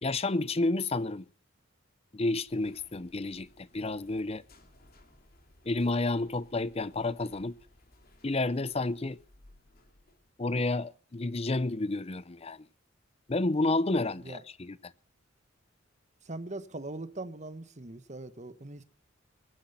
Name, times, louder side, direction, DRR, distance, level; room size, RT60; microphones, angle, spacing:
voice 1, 0.0-1.2 2.1-4.4 5.7-7.6 8.2-9.2 10.4-12.7 13.3-14.8, left 2 dB, 30° left, 0.7 m, -30 dB
sound 1, 2.4-10.3, left 1 dB, 50° left, 3.1 m, -61 dB
voice 2, 16.2-18.8, right 2 dB, 35° right, 1.2 m, -41 dB
22.5 x 10.5 x 5.6 m
head